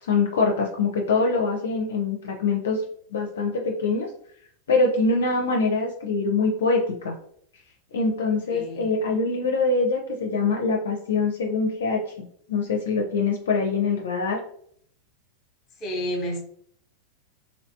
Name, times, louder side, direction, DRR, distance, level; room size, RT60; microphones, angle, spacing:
voice 1, 0.0-2.8 3.1-4.1 4.7-7.2 7.9-12.0 12.5-14.4, left 3 dB, 60° left, 0.5 m, -24 dB
voice 2, 8.5-8.9 15.8-16.4, equal, 25° left, 1.0 m, -30 dB
3.1 x 3.0 x 2.7 m
figure-of-eight pair, 90°, 0 cm